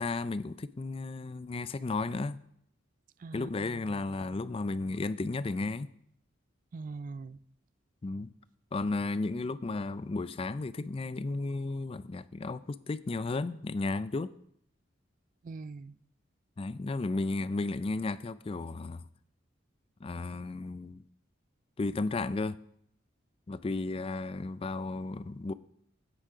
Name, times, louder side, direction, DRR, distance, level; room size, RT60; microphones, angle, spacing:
voice 1, 0.0-2.4 3.3-5.9 8.0-8.3 8.7-14.3 16.6-19.1 20.0-21.0 21.8-22.6 23.5-25.5, left 3 dB, 30° left, 0.4 m, -34 dB
voice 2, 3.2-4.0 6.7-7.4 15.4-15.9, right 3 dB, 45° right, 0.4 m, -42 dB
9.0 x 8.8 x 4.9 m
head